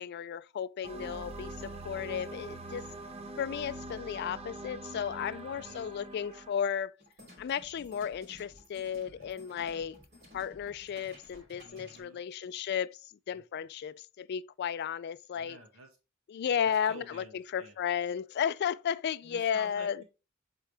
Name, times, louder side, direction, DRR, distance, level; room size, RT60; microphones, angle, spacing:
voice 1, 0.0-2.9 3.4-6.9 7.4-10.0 10.3-15.6 16.3-20.0, left 8 dB, 50° left, 0.3 m, -34 dB
sound 1, 0.8-6.5, right 2 dB, 30° right, 0.7 m, -43 dB
voice 2, 5.3-5.9 9.0-9.3 11.6-12.2 13.3-13.7 15.4-15.9 16.6-17.8 19.2-20.0, right 2 dB, 90° right, 1.9 m, -52 dB
sound 2, 7.0-12.0, left 1 dB, 50° right, 2.9 m, -55 dB
8.1 x 3.8 x 3.3 m
head